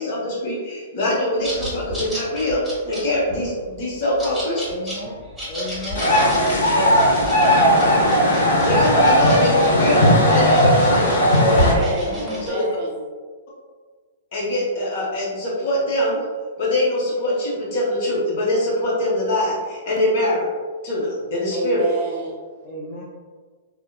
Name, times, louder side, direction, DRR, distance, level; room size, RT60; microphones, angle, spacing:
voice 1, 0.0-5.0 8.6-11.2 12.4-12.6 14.3-16.2 16.6-20.5 20.8-21.8, left 1 dB, 55° left, -4 dB, 1.0 m, -23 dB
sound 1, 1.4-12.5, equal, 5° right, 1.3 m, -31 dB
voice 2, 4.7-5.1 5.5-6.3 11.8-12.5 22.6-23.0, left 1 dB, 35° left, -5 dB, 0.4 m, -33 dB
sound 2, 5.9-11.7, equal, 85° left, 1.0 m, -16 dB
voice 3, 11.4-13.0 21.5-22.4, right 1 dB, 50° right, 0 dB, 0.6 m, -28 dB
3.3 x 2.2 x 2.3 m, 1.5 s
hypercardioid pair, 130°, 0 cm